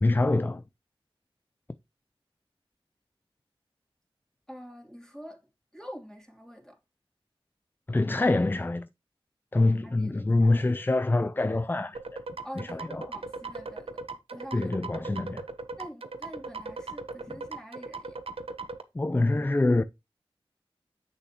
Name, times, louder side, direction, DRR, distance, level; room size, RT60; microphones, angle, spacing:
voice 1, 0.0-0.6 7.9-8.9 9.5-12.0 12.6-13.1 14.5-15.4 18.9-19.8, left 2 dB, 20° left, 0.4 m, -25 dB
voice 2, 4.5-5.5 5.7-6.8 9.8-10.6 12.4-14.0 14.3-14.7 15.8-18.2, equal, 5° left, 2.8 m, -45 dB
sound 1, 11.9-18.8, right 3 dB, 80° right, 0.8 m, -38 dB
7.8 x 6.6 x 2.9 m
wide cardioid pair, 55°, 10 cm